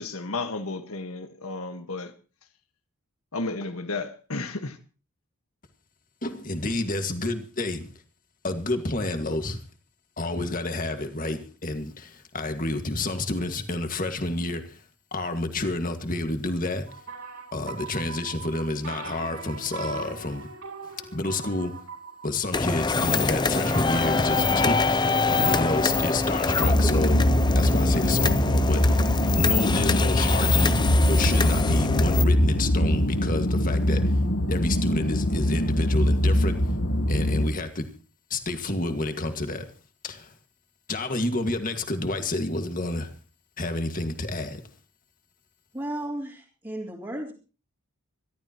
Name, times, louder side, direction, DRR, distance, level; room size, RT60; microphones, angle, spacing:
voice 1, 0.0-2.1 3.3-4.8, left 3 dB, 75° left, 1.5 m, -33 dB
voice 2, 6.2-7.9 8.4-9.6 10.2-14.8 15.1-16.9 17.5-20.5 21.1-21.7 22.2-27.2 27.5-34.2 34.5-36.6 37.1-37.9 38.3-39.7 40.0-40.3 40.9-43.1 43.6-44.6, left 2 dB, 40° left, 1.9 m, -29 dB
sound 1, 16.9-25.7, right 4 dB, 70° right, 7.8 m, -40 dB
sound 2, 22.5-32.3, left 3 dB, 20° left, 0.6 m, -24 dB
sound 3, 26.6-37.5, left 1 dB, 55° left, 1.2 m, -23 dB
voice 3, 45.7-47.3, right 1 dB, 15° right, 3.0 m, -34 dB
26.0 x 12.5 x 3.0 m
head